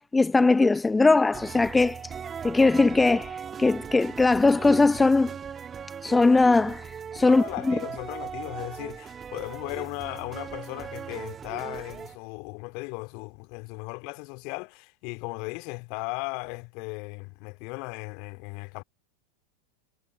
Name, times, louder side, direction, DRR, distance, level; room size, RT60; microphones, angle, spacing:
voice 1, 0.0-2.1 2.4-5.3 6.0-7.8, left 3 dB, 10° left, 1.0 m, -21 dB
sound 1, 1.3-12.2, right 7 dB, 20° right, 1.4 m, -38 dB
voice 2, 7.2-18.8, left 33 dB, 45° left, 2.4 m, -37 dB
figure-of-eight pair, 90°, 0 cm